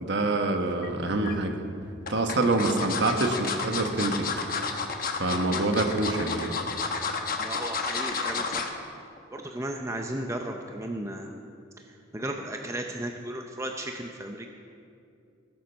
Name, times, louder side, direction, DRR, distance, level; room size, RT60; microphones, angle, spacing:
voice 1, 0.0-1.5 2.1-4.3 5.2-6.5, right 2 dB, 55° right, 5 dB, 1.2 m, -26 dB
sound 1, 0.8-1.4 2.1-8.8 9.2-9.4 9.7-9.8, left 5 dB, 45° left, 1.0 m, -31 dB
voice 2, 7.4-8.6 9.3-11.4 12.1-14.5, right 1 dB, 15° right, 3 dB, 0.6 m, -35 dB
19.5 x 7.5 x 5.6 m, 2.5 s
head